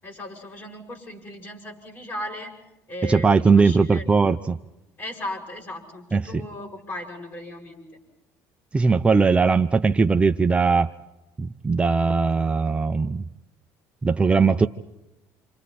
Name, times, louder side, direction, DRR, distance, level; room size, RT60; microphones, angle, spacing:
voice 1, 0.0-2.5 2.9-4.1 5.0-7.8, left 1 dB, 35° left, 2 dB, 7.5 m, -36 dB
voice 2, 3.0-4.6 6.1-6.4 8.7-10.9 11.4-13.2 14.0-14.7, right 4 dB, 15° right, 7 dB, 0.7 m, -19 dB
28.0 x 28.0 x 4.3 m, 0.96 s
cardioid pair, 115°, 7 cm